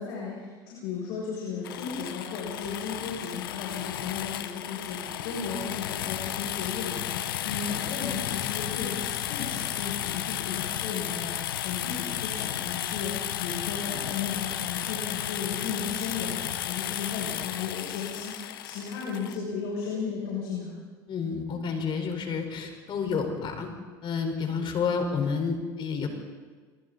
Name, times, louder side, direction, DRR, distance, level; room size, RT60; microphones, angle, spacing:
voice 1, 0.0-18.4 18.6-20.7, left 5 dB, 70° left, -5 dB, 7.3 m, -35 dB
sound 1, 1.6-19.4, left 12 dB, 90° left, 1.1 m, -33 dB
voice 2, 21.1-23.7 24.0-26.1, left 5 dB, 45° left, 4 dB, 4.6 m, -30 dB
26.5 x 23.5 x 4.1 m, 1.5 s
hypercardioid pair, 85°, 11 cm